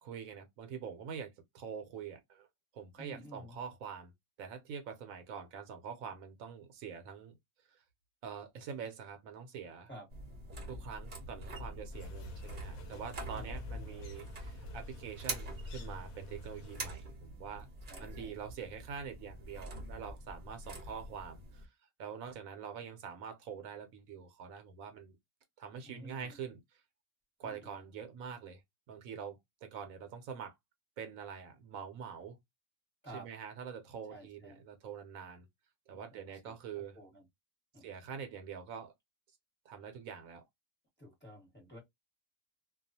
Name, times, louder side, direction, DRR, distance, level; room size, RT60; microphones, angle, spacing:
voice 1, 0.0-2.5 2.7-4.1 4.4-7.3 7.7-7.8 8.2-9.9 10.7-17.7 18.0-21.7 22.0-25.2 25.6-26.8 27.4-28.6 28.9-30.5 31.0-32.4 33.1-35.5 35.9-37.0 37.8-38.9 39.7-40.4, right 7 dB, 75° right, 1.0 m, -45 dB
voice 2, 3.0-3.6 9.9-10.1 13.3-14.0 17.9-18.3 25.8-26.4 27.4-27.8 33.0-33.3 34.1-34.6 35.9-37.3 37.7-37.9 41.0-41.8, equal, 10° left, 1.0 m, -52 dB
sound 1, 10.1-21.7, right 1 dB, 45° right, 0.8 m, -45 dB
sound 2, 11.9-17.0, equal, 90° left, 1.1 m, -52 dB
2.3 x 2.3 x 2.6 m
omnidirectional pair, 1.5 m